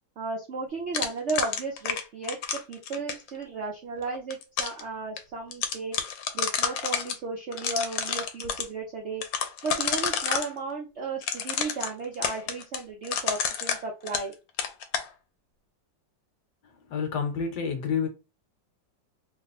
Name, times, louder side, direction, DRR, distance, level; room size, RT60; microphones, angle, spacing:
voice 1, 0.2-6.0 6.3-9.2 9.6-14.3, right 3 dB, 65° right, 0.7 m, -34 dB
sound 1, 0.9-3.3 4.1-4.8 5.2-5.3 5.5-7.2 7.5-8.7 9.2-10.5 11.2-14.3 14.6-15.1, left 7 dB, 90° left, 1.3 m, -29 dB
voice 2, 16.6-18.1, left 6 dB, 65° left, 1.4 m, -29 dB
3.1 x 2.1 x 4.1 m
omnidirectional pair, 2.0 m